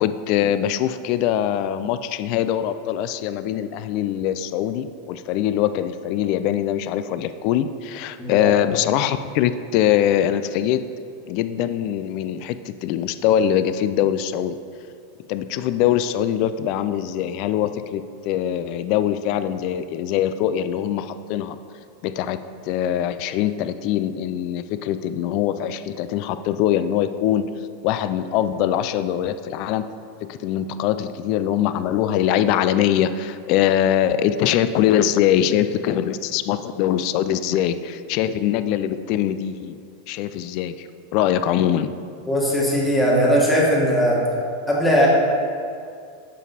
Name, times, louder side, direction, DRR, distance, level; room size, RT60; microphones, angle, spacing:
voice 1, 0.0-10.8 11.3-14.6 15.3-21.6 22.0-22.4 22.6-27.5 27.8-29.8 30.2-39.8 40.1-41.9, left 10 dB, 50° left, 12 dB, 0.3 m, -22 dB
voice 2, 8.2-8.6 42.3-44.2 44.7-45.1, equal, 5° left, -4 dB, 1.7 m, -19 dB
7.4 x 5.3 x 4.1 m, 2.3 s
supercardioid pair, 125°, 0 cm